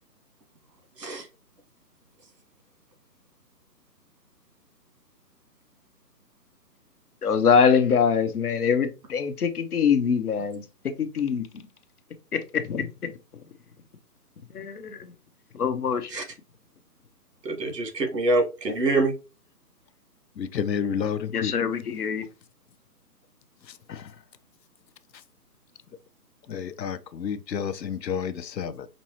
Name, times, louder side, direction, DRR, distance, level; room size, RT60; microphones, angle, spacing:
voice 1, 7.2-10.6 11.0-11.4 12.3-13.1 14.5-15.0 15.5-16.1 21.3-22.2, left 6 dB, 65° left, 1.0 m, -23 dB
voice 2, 17.4-19.1, right 2 dB, 75° right, 2.0 m, -25 dB
voice 3, 20.4-21.5 23.9-24.1 26.5-28.9, left 7 dB, 85° left, 0.8 m, -30 dB
5.3 x 2.8 x 2.9 m
hypercardioid pair, 165°, 49 cm